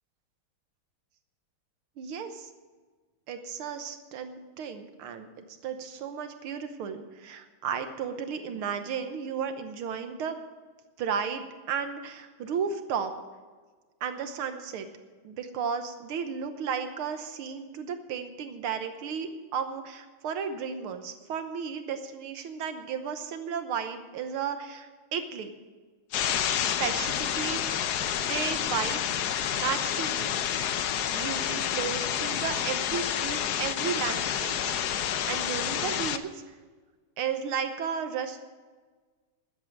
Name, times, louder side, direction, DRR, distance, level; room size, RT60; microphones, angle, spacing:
voice 1, 2.0-2.5 3.3-5.3 5.6-10.4 11.0-13.2 14.0-14.9 15.2-25.5 26.6-27.9 28.2-29.0 29.5-30.7 31.0-36.4 37.2-38.4, right 6 dB, 80° right, 8 dB, 1.9 m, -34 dB
sound 1, 26.1-36.2, left 9 dB, 65° left, 1.0 m, -29 dB
13.0 x 9.4 x 7.4 m, 1.4 s
omnidirectional pair, 2.4 m